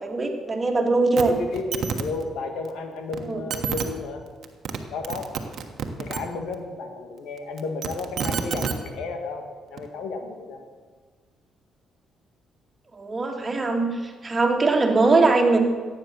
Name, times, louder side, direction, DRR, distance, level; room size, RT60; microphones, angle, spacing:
voice 1, 0.0-1.3 3.3-3.4 12.9-15.6, right 3 dB, 30° right, 3 dB, 2.2 m, -21 dB
voice 2, 1.2-4.2 4.9-5.3 6.0-10.6, left 3 dB, 85° left, 5 dB, 1.9 m, -33 dB
sound 1, 1.2-1.3 1.5-2.0 3.1-3.2 3.5-3.9 4.4-4.8 5.0-6.2 7.6-8.8 9.8-9.9, right 7 dB, 65° right, 1.3 m, -28 dB
14.5 x 9.1 x 7.1 m, 1.5 s
cardioid pair, 90°, 0 cm